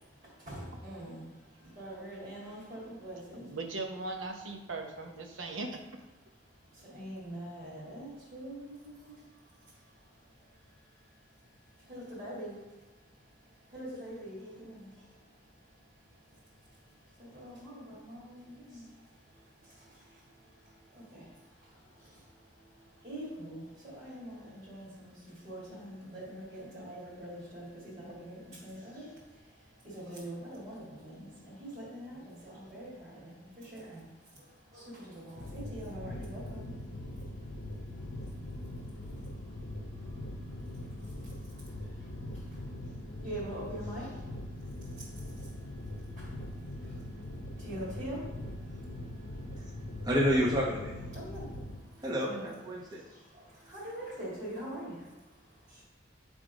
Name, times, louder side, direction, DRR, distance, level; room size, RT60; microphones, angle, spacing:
voice 1, 0.2-3.6 6.7-50.1 51.1-52.5 52.7-55.8, right 1 dB, 35° right, -10 dB, 2.0 m, -46 dB
voice 2, 3.3-5.8, right 3 dB, 90° right, 3 dB, 0.8 m, -39 dB
sound 1, 35.4-51.8, left 1 dB, 70° left, 0.7 m, -42 dB
voice 3, 50.0-50.9 52.0-53.0, equal, 20° right, -4 dB, 0.9 m, -29 dB
7.9 x 3.6 x 5.0 m, 1.2 s
head